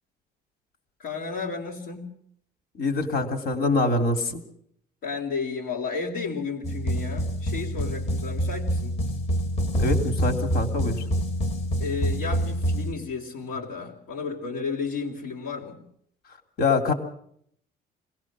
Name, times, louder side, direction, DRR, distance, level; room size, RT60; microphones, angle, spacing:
voice 1, 1.0-2.1 5.0-9.0 11.8-15.8, left 4 dB, 85° left, -2 dB, 3.4 m, -32 dB
voice 2, 2.8-4.4 9.8-11.0 16.6-16.9, left 3 dB, 70° left, 7 dB, 3.2 m, -24 dB
sound 1, 6.6-12.9, equal, 40° left, 1.9 m, -26 dB
25.0 x 17.5 x 6.2 m, 0.67 s
cardioid pair, 110°, 17 cm